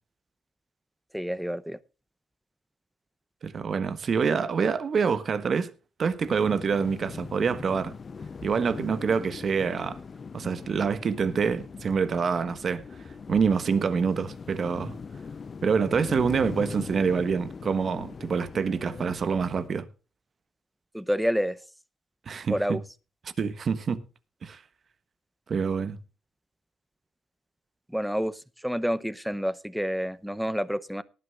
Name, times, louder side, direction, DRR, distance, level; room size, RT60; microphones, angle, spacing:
voice 1, 1.1-1.8 18.9-19.0 20.9-21.6 22.5-22.8 27.9-31.0, equal, ahead, 0.7 m, -28 dB
voice 2, 3.4-5.7 6.0-7.9 8.4-10.0 10.3-12.8 13.3-14.9 15.6-19.9 22.3-22.8 23.4-24.0 24.4-24.6 25.5-26.0, right 6 dB, 45° right, 1.4 m, -26 dB
sound 1, 6.2-19.7, left 5 dB, 40° left, 0.7 m, -41 dB
18.5 x 11.5 x 2.5 m
cardioid pair, 90°, 0 cm